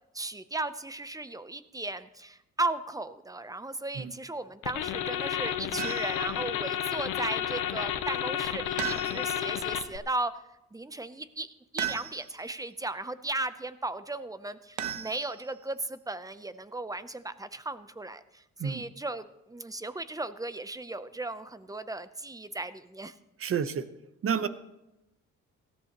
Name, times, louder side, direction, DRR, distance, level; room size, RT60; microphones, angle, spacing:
voice 1, 0.1-10.4 10.7-23.1, right 2 dB, 10° right, 13 dB, 0.6 m, -36 dB
sound 1, 4.6-10.0, left 10 dB, 90° left, 0.8 m, -31 dB
sound 2, 5.8-6.3 8.8-9.5 11.8-12.5 14.8-15.7, right 10 dB, 75° right, 1.0 m, -36 dB
voice 2, 23.4-23.8 24.2-24.5, right 7 dB, 50° right, 12 dB, 0.9 m, -29 dB
18.0 x 14.0 x 3.0 m, 0.92 s
cardioid pair, 90°, 30 cm